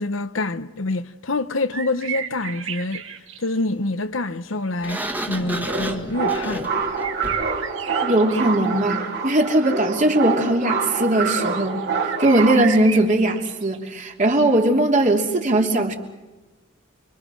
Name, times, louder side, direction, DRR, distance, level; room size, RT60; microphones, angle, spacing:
voice 1, 0.0-3.0 3.4-5.0 5.3-6.7, left 2 dB, 75° left, 1.1 m, -26 dB
sound 1, 1.7-3.6 5.9-6.0 6.9-14.0 14.3-14.5, right 8 dB, 75° right, 2.1 m, -35 dB
Sliding door, 4.8-7.6, right 1 dB, 10° right, 1.9 m, -31 dB
sound 2, 5.6-12.6, right 5 dB, 55° right, 3.8 m, -26 dB
voice 2, 8.0-11.9 12.2-15.9, right 1 dB, 40° right, 3.0 m, -19 dB
29.5 x 24.0 x 6.3 m
head